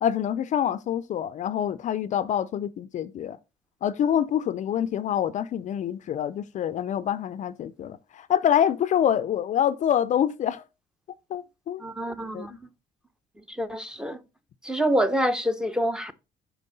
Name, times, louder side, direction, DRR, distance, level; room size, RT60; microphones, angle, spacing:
voice 1, 0.0-3.4 3.8-10.6 11.3-11.8 12.3-12.6, left 9 dB, 45° left, 0.4 m, -26 dB
voice 2, 11.8-12.7 13.5-14.2 14.6-16.1, equal, 5° right, 0.6 m, -26 dB
6.0 x 5.3 x 3.9 m
cardioid pair, 110°, 17 cm